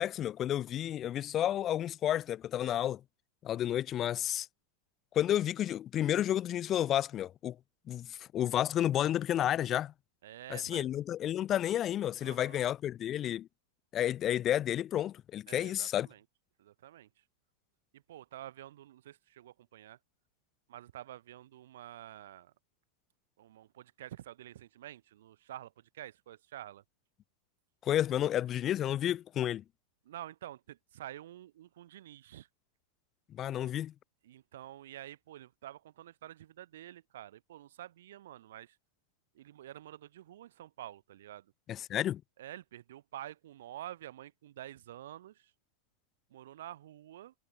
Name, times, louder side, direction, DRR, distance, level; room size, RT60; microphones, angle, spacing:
voice 1, 0.0-3.0 3.4-4.5 5.1-7.6 7.9-9.9 10.5-13.5 13.9-16.1 27.8-29.6 33.3-33.9 41.7-42.2, left 11 dB, 30° left, 3.1 m, -31 dB
voice 2, 10.2-10.9 12.2-12.6 15.5-16.2 16.6-17.2 17.9-20.0 20.7-22.5 23.4-26.8 30.0-32.5 33.6-33.7 34.2-38.8 39.3-41.5 42.4-45.5 46.3-47.3, right 13 dB, 60° right, 3.9 m, -48 dB
figure-of-eight pair, 90°, 0 cm